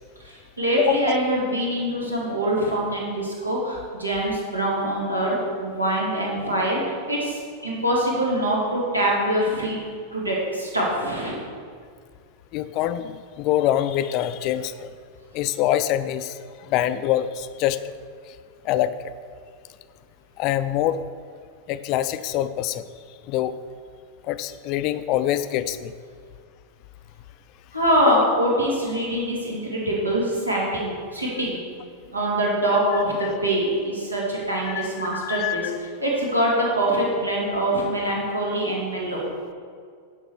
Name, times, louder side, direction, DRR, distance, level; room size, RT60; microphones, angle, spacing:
voice 1, 0.2-9.8 10.1-11.4 27.7-31.6 32.1-35.7 36.0-39.2, right 1 dB, 85° right, -4 dB, 2.1 m, -24 dB
voice 2, 0.8-1.2 12.5-14.9 15.3-16.4 16.7-17.9 18.6-19.0 20.4-21.0 21.7-22.8 23.3-23.6 24.3-25.9 28.1-28.2 34.7-34.9 35.1-35.7, left 12 dB, 40° left, 13 dB, 0.3 m, -24 dB
10.0 x 6.1 x 4.6 m, 2.1 s
figure-of-eight pair, 90°, 0 cm